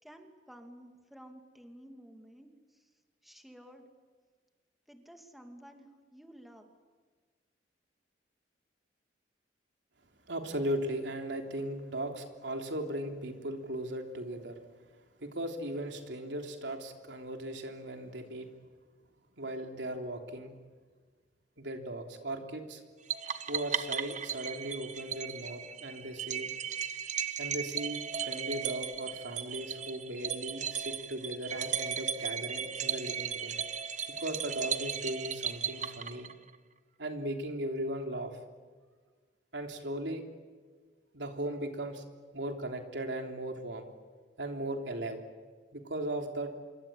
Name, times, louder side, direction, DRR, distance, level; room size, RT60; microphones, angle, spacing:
voice 1, 0.0-2.9 3.2-3.9 4.9-6.7 35.8-36.0, equal, ahead, 4 dB, 2.6 m, -53 dB
voice 2, 10.3-14.6 15.2-18.5 19.4-20.5 21.6-22.8 23.5-26.5 27.4-33.6 34.2-36.3 37.0-38.4 39.5-40.2 41.1-42.0 42.3-43.9 44.4-45.2 45.7-46.5, right 1 dB, 90° right, 4 dB, 3.3 m, -37 dB
sound 1, 23.1-36.5, right 8 dB, 45° right, 1.1 m, -36 dB
27.0 x 23.5 x 8.8 m, 1.5 s
head